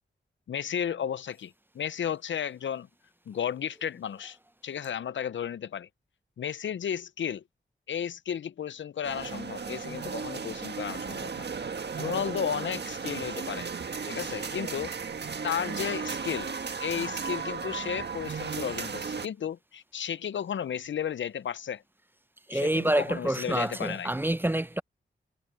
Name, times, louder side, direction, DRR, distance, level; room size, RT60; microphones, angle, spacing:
voice 1, 0.5-2.9 3.3-4.4 4.6-5.9 6.4-7.4 7.9-11.5 12.0-13.7 14.0-14.9 15.4-16.5 16.8-21.8 22.5-24.1, left 8 dB, 70° left, 0.6 m, -33 dB
sound 1, 9.0-19.3, right 5 dB, 60° right, 1.5 m, -35 dB
voice 2, 22.5-24.8, right 1 dB, 10° right, 0.7 m, -27 dB
cardioid pair, 45°, 20 cm